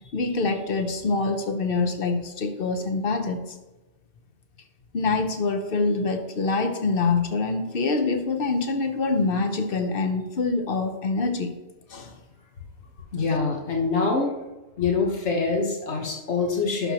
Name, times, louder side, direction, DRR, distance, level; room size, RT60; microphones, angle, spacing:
voice 1, 0.1-3.4 4.9-11.5 11.9-12.1, left 3 dB, 55° left, 7 dB, 1.0 m, -25 dB
voice 2, 13.1-14.3 14.8-16.9, left 4 dB, 85° left, 0 dB, 1.6 m, -25 dB
11.5 x 5.9 x 3.0 m, 1.1 s
omnidirectional pair, 1.1 m